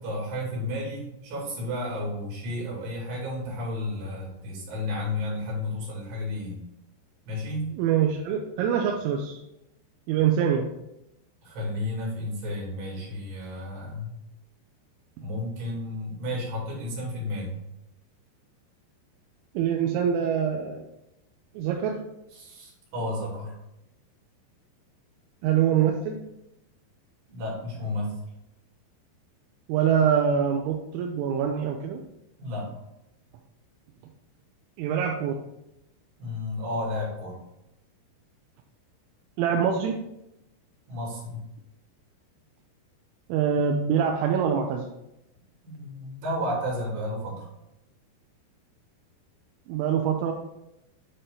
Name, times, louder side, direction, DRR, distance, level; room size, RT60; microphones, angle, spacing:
voice 1, 0.0-6.6 7.3-7.7 11.4-14.2 15.2-17.6 22.3-23.6 27.3-28.1 32.4-32.7 36.2-37.4 40.9-41.4 45.6-47.5, left 1 dB, 65° right, -4 dB, 4.4 m, -32 dB
voice 2, 7.8-9.4 10.1-10.7 19.5-20.8 21.5-22.0 25.4-26.2 29.7-32.0 34.8-35.4 39.4-40.0 43.3-44.8 49.7-50.3, right 8 dB, 85° right, 2 dB, 3.0 m, -24 dB
9.1 x 4.2 x 3.8 m, 0.86 s
omnidirectional pair, 5.5 m